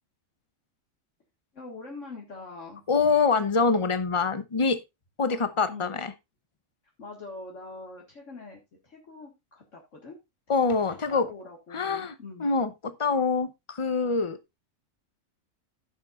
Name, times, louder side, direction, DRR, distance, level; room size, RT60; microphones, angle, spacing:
voice 1, 1.5-2.8 5.3-5.4 5.7-6.0 7.0-10.2 10.5-10.7 11.1-12.5, left 3 dB, 60° left, 2.0 m, -43 dB
voice 2, 2.9-4.8 5.2-6.1 10.5-11.3 11.7-12.1 12.4-14.6, left 4 dB, 30° left, 0.6 m, -25 dB
15.5 x 6.7 x 2.4 m
omnidirectional pair, 1.5 m